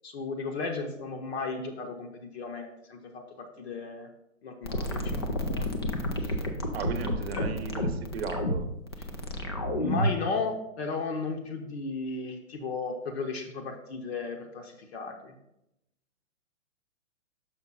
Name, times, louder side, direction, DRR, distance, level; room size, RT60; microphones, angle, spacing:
voice 1, 0.0-4.1 4.4-5.9 6.2-6.4 7.4-7.5 9.7-15.3, left 4 dB, 50° left, 3 dB, 1.0 m, -35 dB
sound 1, 4.6-10.2, left 1 dB, 20° left, 0.3 m, -30 dB
voice 2, 6.7-8.7, right 6 dB, 50° right, 11 dB, 0.8 m, -36 dB
6.2 x 5.2 x 3.9 m, 0.85 s
hypercardioid pair, 130°, 39 cm